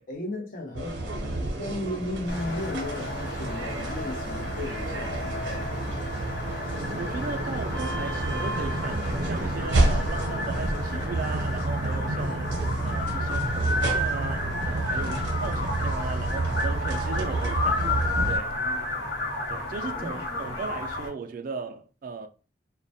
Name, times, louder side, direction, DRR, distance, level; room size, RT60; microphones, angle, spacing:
voice 1, 0.1-6.0 15.0-15.3 18.5-19.1 19.7-20.6, left 1 dB, 50° left, 0.7 m, -36 dB
sound 1, 0.7-18.4, right 2 dB, 80° right, 0.6 m, -29 dB
sound 2, 2.3-21.1, left 2 dB, 80° left, 1.1 m, -32 dB
voice 2, 6.9-12.5 12.8-17.9 18.3-18.6 19.5-22.3, right 5 dB, 50° right, 0.3 m, -37 dB
2.2 x 2.1 x 2.7 m
head